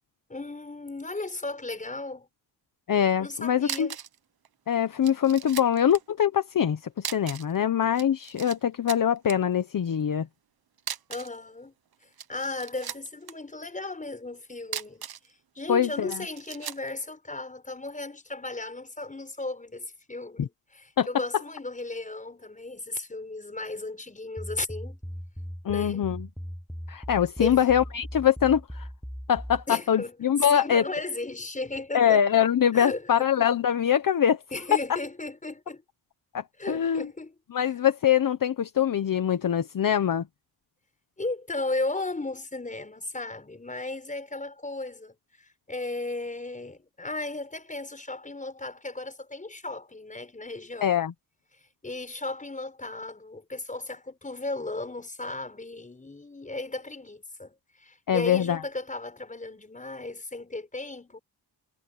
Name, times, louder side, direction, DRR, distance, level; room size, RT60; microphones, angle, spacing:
voice 1, 0.3-2.3 3.2-3.9 11.1-11.7 12.3-15.1 15.5-25.0 25.7-26.1 27.4-27.7 29.7-30.1 30.5-32.2 32.7-33.5 34.5-35.8 36.6-37.3 41.2-51.0 51.8-57.5 57.8-61.2, left 2 dB, 20° left, 6.2 m, -35 dB
voice 2, 2.9-3.9 4.7-10.3 15.7-16.2 20.4-20.5 21.0-21.1 25.6-26.3 26.9-28.9 29.3-30.8 31.9-34.4 36.3-37.1 37.5-40.3 50.8-51.1 58.1-58.6, left 9 dB, 50° left, 1.2 m, -23 dB
sound 1, 3.3-3.4 3.6-4.2 4.4-4.5 5.0-6.0 7.0-7.6 7.8-8.6 8.9-9.4 10.8-11.4 12.0-13.3 14.6-15.3 16.1-16.9, right 9 dB, 60° right, 1.2 m, -37 dB
sound 2, 24.4-29.7, equal, ahead, 0.9 m, -38 dB
wide cardioid pair, 125°, 41 cm